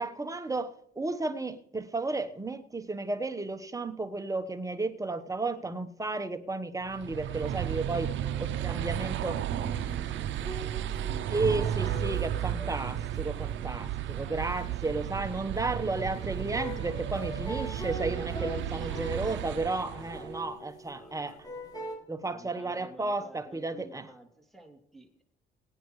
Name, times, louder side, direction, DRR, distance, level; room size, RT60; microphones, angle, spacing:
voice 1, 0.0-8.1 8.4-9.4 11.3-21.4 22.1-24.1, right 3 dB, 15° right, 1.1 m, -33 dB
sound 1, 6.9-20.4, right 11 dB, 70° right, 0.6 m, -33 dB
voice 2, 8.0-13.4 14.1-15.6 18.8-20.5 21.0-21.8 22.2-25.2, right 2 dB, ahead, 2.7 m, -53 dB
sound 2, 9.5-22.0, equal, 20° left, 6.4 m, -43 dB
22.5 x 9.5 x 3.2 m
cardioid pair, 90°, 20 cm